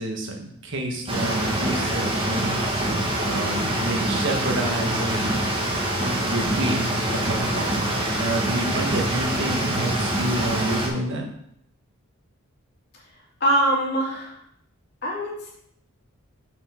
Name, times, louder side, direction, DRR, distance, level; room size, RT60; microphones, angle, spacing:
voice 1, 0.0-2.6 3.2-5.4 6.2-7.8 8.1-11.3, right 1 dB, 55° right, 2 dB, 1.5 m, -29 dB
sound 1, 1.1-10.9, right 1 dB, 25° right, 1.5 m, -25 dB
voice 2, 13.4-14.3 15.0-15.3, right 1 dB, 50° left, -4 dB, 2.7 m, -22 dB
5.8 x 5.6 x 5.9 m, 0.71 s
head